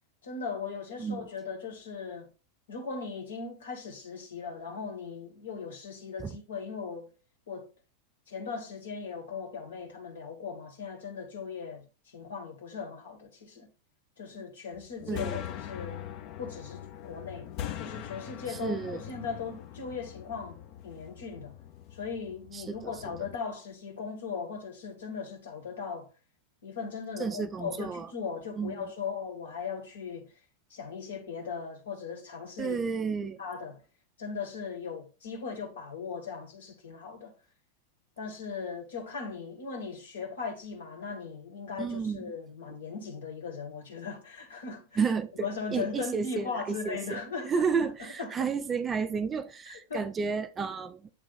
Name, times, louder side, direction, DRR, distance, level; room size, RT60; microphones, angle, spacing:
voice 1, 0.2-2.3 2.7-7.1 7.5-7.7 8.3-13.7 14.2-16.0 16.4-17.5 17.8-21.5 21.9-26.1 26.6-30.3 30.7-32.8 33.2-33.8 34.2-37.3 38.2-45.0 45.4-48.5 49.7-50.1, left 5 dB, 65° left, 1.5 m, -38 dB
sound 1, 14.7-23.4, left 11 dB, 40° left, 0.7 m, -42 dB
voice 2, 15.1-15.4 18.5-19.0 22.5-22.9 27.2-28.1 28.6-28.9 32.6-33.4 41.8-42.3 45.0-51.1, right 5 dB, 20° right, 0.4 m, -32 dB
8.1 x 3.0 x 4.0 m
figure-of-eight pair, 90°, 0 cm